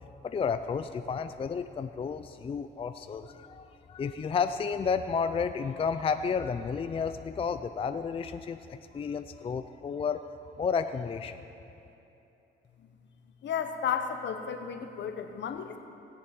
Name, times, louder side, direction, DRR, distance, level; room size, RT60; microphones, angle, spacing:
voice 1, 0.2-10.3 10.6-11.4, left 6 dB, 30° left, 9 dB, 0.4 m, -32 dB
voice 2, 13.4-15.8, left 7 dB, 65° left, 7 dB, 1.0 m, -33 dB
17.5 x 7.1 x 5.2 m, 3.0 s
cardioid pair, 90°, 20 cm